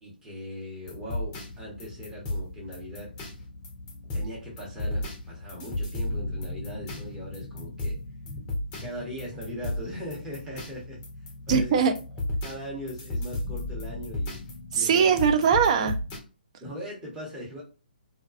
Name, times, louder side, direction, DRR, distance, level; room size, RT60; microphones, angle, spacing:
voice 1, 0.0-3.1 4.1-8.0 8.8-11.0 11.5-11.8 12.4-14.4 14.7-15.2 16.6-17.6, equal, 10° right, -4 dB, 0.9 m, -39 dB
sound 1, 0.9-16.2, left 1 dB, 15° left, 0.6 m, -35 dB
voice 2, 11.5-11.9 14.7-16.0, right 7 dB, 40° right, 7 dB, 0.4 m, -21 dB
2.3 x 2.2 x 2.4 m, 0.33 s
hypercardioid pair, 150°, 6 cm